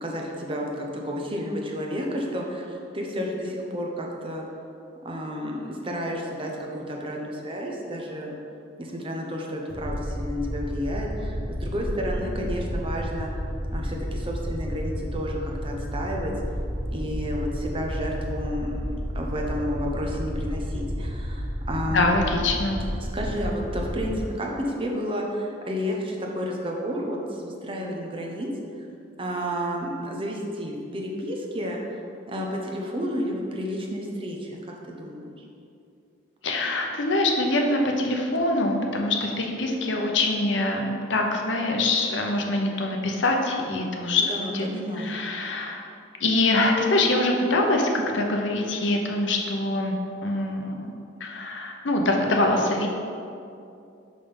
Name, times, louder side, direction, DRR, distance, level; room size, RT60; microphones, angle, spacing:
voice 1, 0.0-4.4 5.0-8.3 8.8-13.3 13.7-16.3 16.9-18.7 19.1-22.1 23.0-28.5 29.2-35.3 44.2-45.3, equal, 25° right, -1 dB, 0.8 m, -31 dB
sound 1, 9.7-24.2, equal, ahead, 1.4 m, -31 dB
voice 2, 21.9-22.8 36.4-44.2 44.5-44.7 45.0-45.8 46.2-50.9 51.2-52.9, left 2 dB, 70° left, 2 dB, 0.8 m, -24 dB
5.7 x 5.2 x 5.3 m, 2.6 s
head